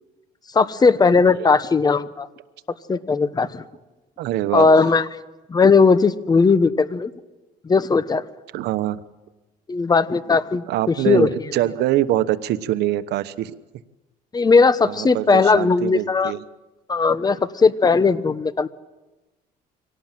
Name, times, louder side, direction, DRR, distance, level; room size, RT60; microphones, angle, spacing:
voice 1, 0.5-2.3 2.9-3.6 4.5-5.0 5.5-7.1 7.6-8.2 9.7-11.3 14.3-16.3 16.9-18.7, left 4 dB, 25° left, 14 dB, 1.1 m, -17 dB
voice 2, 4.2-4.9 8.5-9.0 10.7-13.5 14.9-16.4, right 13 dB, 80° right, 12 dB, 1.2 m, -24 dB
24.5 x 18.0 x 7.6 m, 1.1 s
cardioid pair, 110°, 17 cm